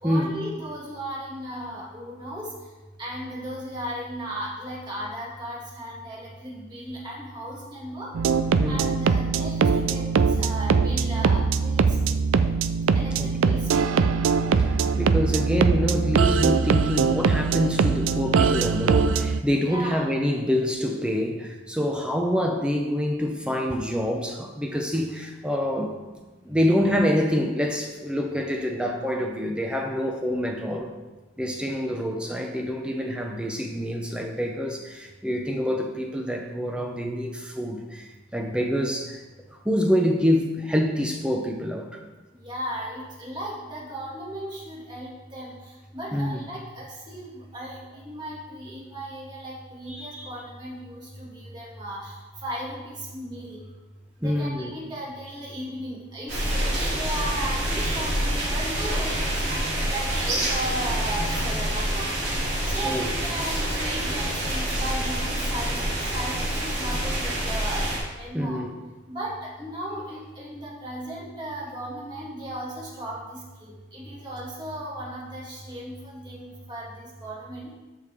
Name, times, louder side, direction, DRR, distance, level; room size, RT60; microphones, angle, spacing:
voice 1, 0.0-2.5 3.0-8.1 8.6-12.2 12.9-13.9 19.6-20.0 42.4-45.5 45.9-52.1 52.4-53.6 54.2-59.4 59.7-62.1 62.7-67.9 68.2-68.6 69.1-77.7, right 1 dB, 20° right, -6 dB, 2.2 m, -36 dB
sound 1, 8.1-19.4, right 5 dB, 85° right, 0.4 m, -22 dB
voice 2, 13.2-13.6 14.6-26.0 26.5-30.9 31.4-39.2 39.6-42.0 46.1-46.4 49.9-50.3 54.2-54.7 62.8-63.1 68.3-68.7, equal, 5° right, 2 dB, 0.6 m, -26 dB
sound 2, 56.3-68.0, right 1 dB, 55° right, 3.2 m, -27 dB
13.0 x 5.1 x 3.5 m, 1.2 s
head